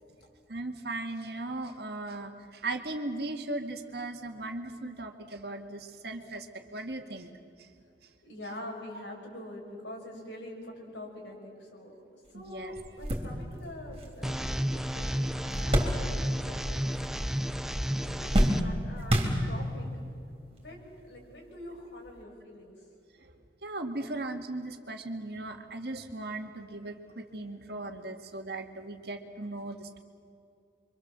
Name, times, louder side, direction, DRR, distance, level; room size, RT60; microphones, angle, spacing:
voice 1, 0.5-7.3 12.3-12.7 23.6-30.0, right 2 dB, 60° right, 5 dB, 2.0 m, -37 dB
voice 2, 8.2-11.9 12.3-17.1 17.6-17.8 18.0-19.9 20.5-22.8, left 1 dB, 80° left, 0 dB, 6.4 m, -45 dB
sound 1, 12.3-12.4 12.8-16.5 16.8-17.5 17.8-19.9 20.6-20.7 22.0-22.2, equal, 30° right, 3.7 m, -30 dB
sound 2, 14.2-18.6, equal, ahead, 0.5 m, -32 dB
28.5 x 25.0 x 7.6 m, 2.5 s
head